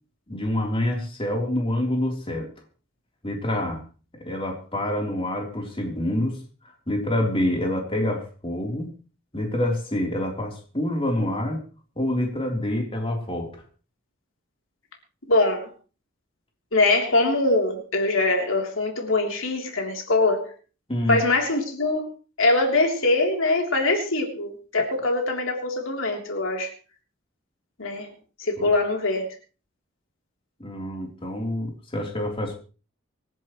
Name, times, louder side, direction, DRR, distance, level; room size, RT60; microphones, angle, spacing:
voice 1, 0.3-2.5 3.2-3.8 4.2-6.4 6.9-8.9 9.3-11.6 12.0-13.6 20.9-21.2 28.6-28.7 30.6-32.5, left 1 dB, 30° left, 0 dB, 3.6 m, -27 dB
voice 2, 15.3-15.7 16.7-20.5 21.1-22.1 22.4-26.7 27.8-28.1 28.4-29.3, left 2 dB, 90° left, 2 dB, 3.5 m, -23 dB
25.5 x 10.5 x 3.2 m, 0.35 s
head